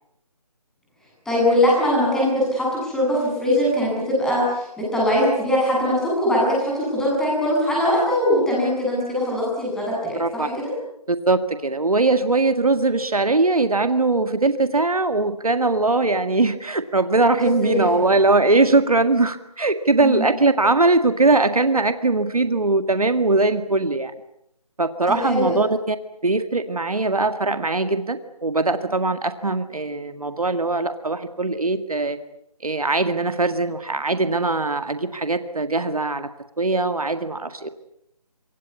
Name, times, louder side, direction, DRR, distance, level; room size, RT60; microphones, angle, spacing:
voice 1, 1.2-10.7 17.6-18.0 20.0-20.3 25.1-25.7, left 1 dB, 5° left, -5 dB, 7.9 m, -21 dB
voice 2, 10.1-10.5 11.1-24.1 24.8-26.0 26.2-32.2 32.6-36.3 36.6-37.7, right 3 dB, 65° right, 10 dB, 1.9 m, -21 dB
26.5 x 25.0 x 8.4 m, 0.78 s
figure-of-eight pair, 155°, 20 cm